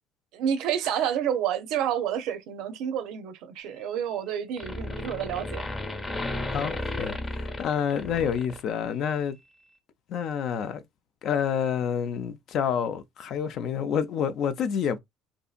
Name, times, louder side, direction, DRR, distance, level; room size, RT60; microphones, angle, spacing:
voice 1, 0.3-5.6, right 9 dB, 70° right, 0.5 m, -29 dB
sound 1, 3.6-4.3 4.6-9.0, left 2 dB, 25° left, 0.9 m, -34 dB
voice 2, 6.5-9.4 10.1-10.8 11.2-15.0, left 7 dB, 60° left, 0.4 m, -28 dB
2.7 x 2.5 x 2.4 m
supercardioid pair, 100°, 0 cm